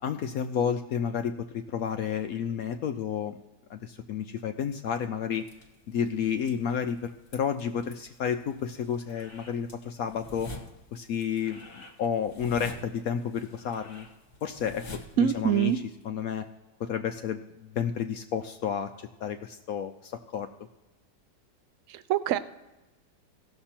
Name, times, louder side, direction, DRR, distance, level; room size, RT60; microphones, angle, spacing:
voice 1, 0.0-3.3 3.7-5.4 5.9-10.5 10.9-14.1 14.4-16.5 16.8-20.5, left 7 dB, 70° left, 7 dB, 0.9 m, -31 dB
sound 1, 5.4-16.0, left 1 dB, 35° left, 1.4 m, -47 dB
voice 2, 15.2-15.8 21.9-22.4, right 10 dB, 75° right, 14 dB, 0.7 m, -24 dB
16.5 x 6.7 x 4.3 m, 1.1 s
omnidirectional pair, 1.9 m